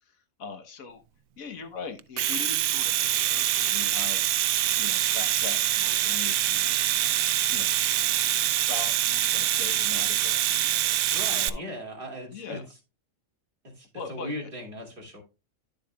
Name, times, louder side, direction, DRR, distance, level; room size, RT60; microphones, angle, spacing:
voice 1, 0.4-1.0 1.4-4.2 4.8-6.8 7.2-7.7 8.5-10.8 11.3-11.7 12.3-12.6 13.9-14.5, left 5 dB, 85° left, 7 dB, 1.5 m, -41 dB
Domestic sounds home sounds, 2.0-11.5, right 12 dB, 90° right, 1.0 m, -25 dB
voice 2, 11.1-12.6 13.6-15.2, equal, 40° right, 0 dB, 2.6 m, -38 dB
10.5 x 7.5 x 2.2 m, 0.29 s
omnidirectional pair, 1.4 m